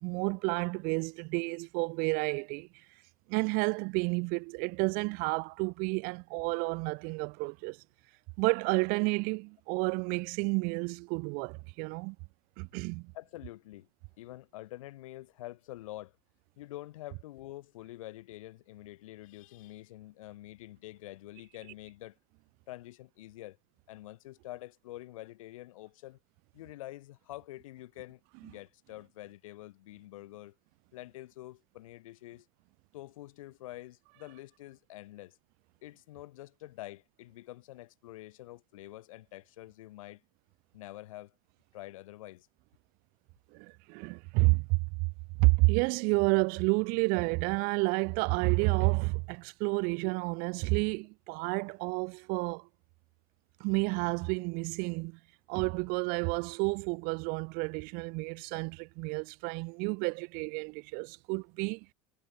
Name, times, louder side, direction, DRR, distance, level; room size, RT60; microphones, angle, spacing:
voice 1, 0.0-2.7 3.3-7.8 8.4-12.2 12.6-13.1 43.5-45.1 45.4-52.7 53.6-55.2 55.5-61.8, right 31 dB, 55° right, 1.2 m, -30 dB
voice 2, 13.1-13.9 14.2-16.2 16.6-22.2 22.7-23.6 23.9-26.2 26.5-30.5 30.9-32.5 32.9-35.4 35.8-40.2 40.7-41.3 41.7-42.5, left 16 dB, 65° left, 3.1 m, -47 dB
figure-of-eight pair, 70°, 18 cm